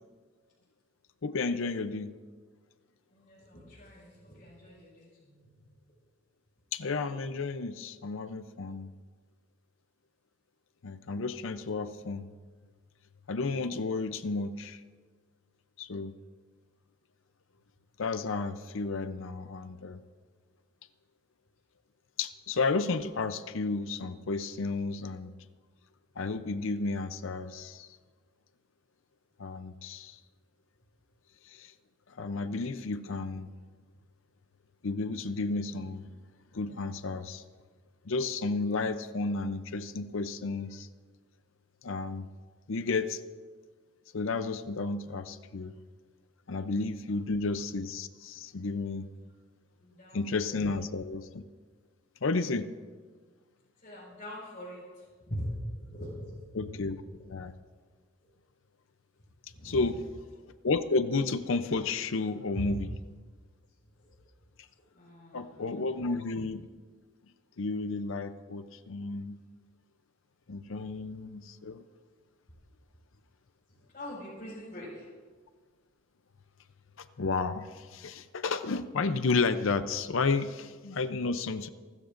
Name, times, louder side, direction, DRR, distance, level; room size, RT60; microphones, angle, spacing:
voice 1, 1.2-2.2 6.7-8.9 10.8-12.3 13.3-14.8 15.8-16.1 18.0-20.0 22.2-25.3 26.2-27.9 29.4-30.2 31.5-31.7 32.2-33.5 34.8-36.1 36.5-37.4 38.1-40.9 41.8-42.3 42.7-43.2 44.1-45.7 46.5-49.1 50.1-51.4 52.2-52.7 56.5-57.0 57.3-57.5 59.6-60.0 60.6-62.9 65.3-66.7 67.6-69.4 70.5-71.8 77.0-81.7, left 3 dB, 65° left, 11 dB, 0.6 m, -32 dB
voice 2, 3.1-5.7 46.5-46.6 47.0-47.2 49.8-50.7 53.8-56.7 57.2-57.3 59.5-59.9 62.5-62.7 63.8-64.2 64.9-66.0 73.7-75.1, equal, 40° left, -8 dB, 5.3 m, -42 dB
29.0 x 13.5 x 2.6 m, 1.5 s
head